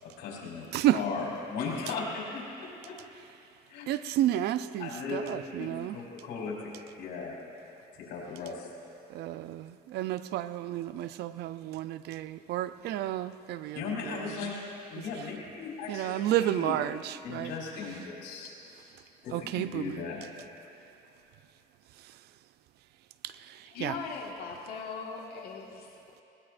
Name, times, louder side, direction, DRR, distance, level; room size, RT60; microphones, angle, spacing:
voice 1, 0.0-0.6 0.9-3.0 3.7-3.8 4.8-7.4 7.9-8.7 13.7-14.6 14.9-16.8 17.2-18.5 19.2-20.2, left 4 dB, 85° left, -4 dB, 4.3 m, -37 dB
voice 2, 3.9-6.0 9.1-14.5 15.9-17.5 19.3-20.0 23.2-23.9, right 13 dB, 75° right, 13 dB, 0.5 m, -31 dB
voice 3, 23.7-26.2, left 5 dB, 65° left, -2 dB, 1.7 m, -40 dB
20.5 x 19.0 x 2.6 m, 2.7 s
cardioid pair, 110°, 17 cm